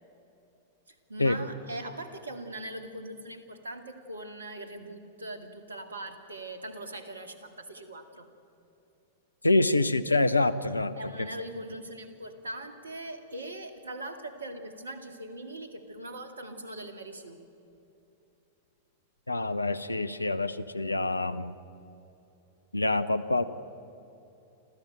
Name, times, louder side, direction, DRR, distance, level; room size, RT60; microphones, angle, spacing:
voice 1, 0.9-8.3 11.0-17.4, right 1 dB, 80° right, 8 dB, 2.1 m, -41 dB
voice 2, 9.4-11.3 19.3-21.5 22.7-23.4, left 2 dB, 90° left, 14 dB, 0.8 m, -26 dB
28.5 x 14.0 x 8.9 m, 2.9 s
figure-of-eight pair, 95°, 0 cm